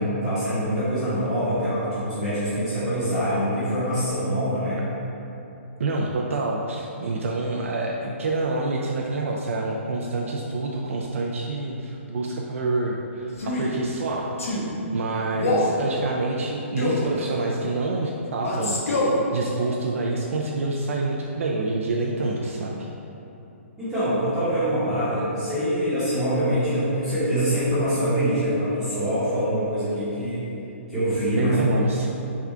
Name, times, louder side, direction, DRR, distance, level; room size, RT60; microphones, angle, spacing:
voice 1, 0.0-4.8 23.8-30.5 30.9-31.6, equal, 5° right, -15 dB, 0.9 m, -24 dB
voice 2, 5.8-14.3 14.9-18.8 19.3-22.9 31.4-32.1, right 2 dB, 75° right, -1 dB, 0.4 m, -27 dB
Male speech man speaking, 13.3-13.7 14.4-14.7 15.3-15.7 16.8-17.1 18.4-19.2, left 2 dB, 80° left, 0.8 m, -24 dB
3.5 x 2.4 x 4.3 m, 3.0 s
hypercardioid pair, 170°, 7 cm